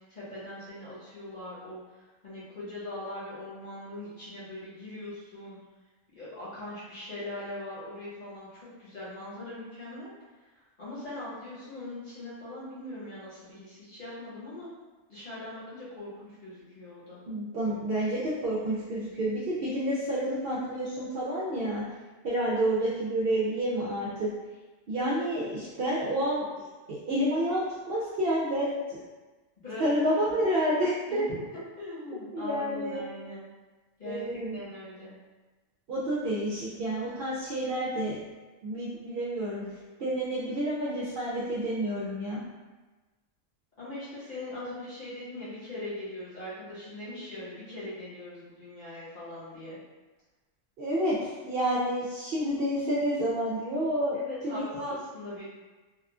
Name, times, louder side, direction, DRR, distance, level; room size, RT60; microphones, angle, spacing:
voice 1, 0.1-5.6 6.2-10.1 10.8-14.7 15.1-17.2 29.6-29.8 31.1-33.5 34.0-35.2 43.8-49.8 54.1-55.4, left 1 dB, 40° left, -11 dB, 1.0 m, -41 dB
voice 2, 17.3-21.8 22.2-24.3 24.9-26.4 26.9-29.0 29.8-31.3 32.3-33.0 34.0-34.6 35.9-38.2 38.6-39.6 40.0-42.4 50.8-54.2 54.4-54.6, right 1 dB, 65° right, -7 dB, 0.6 m, -29 dB
2.9 x 2.3 x 2.3 m, 1.2 s
omnidirectional pair, 1.4 m